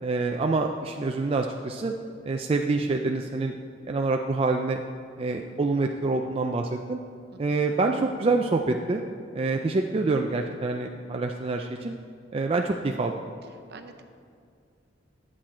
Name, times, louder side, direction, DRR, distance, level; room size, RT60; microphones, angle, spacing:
voice 1, 0.0-1.9 2.2-3.5 3.9-4.8 5.2-7.0 7.4-9.0 9.3-11.9 12.3-13.1, right 3 dB, 30° right, 3 dB, 0.3 m, -26 dB
voice 2, 13.7-14.0, right 3 dB, 55° right, 7 dB, 0.7 m, -46 dB
10.5 x 7.5 x 4.3 m, 2.3 s
head